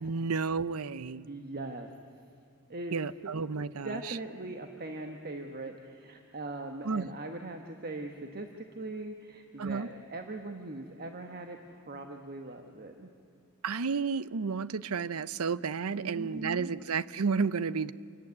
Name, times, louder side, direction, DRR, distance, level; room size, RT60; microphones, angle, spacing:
voice 1, 0.0-1.3 2.9-4.2 6.8-7.1 9.6-9.9 13.6-17.9, right 5 dB, 70° right, 17 dB, 0.6 m, -32 dB
voice 2, 1.3-1.9 2.7-3.0 3.5-3.6 3.8-13.1 15.9-16.7, right 2 dB, 45° right, 5 dB, 1.3 m, -40 dB
27.5 x 17.5 x 9.7 m, 2.5 s
head